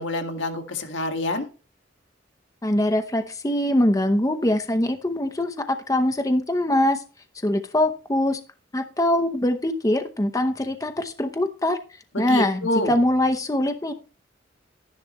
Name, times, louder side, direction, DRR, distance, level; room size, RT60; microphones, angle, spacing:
voice 1, 0.0-1.5 12.1-12.9, left 1 dB, 75° left, 5 dB, 1.9 m, -27 dB
voice 2, 2.6-7.0 7.4-8.4 8.7-11.8 12.2-13.9, left 1 dB, 20° left, 7 dB, 0.8 m, -23 dB
12.0 x 10.5 x 3.1 m, 0.34 s
head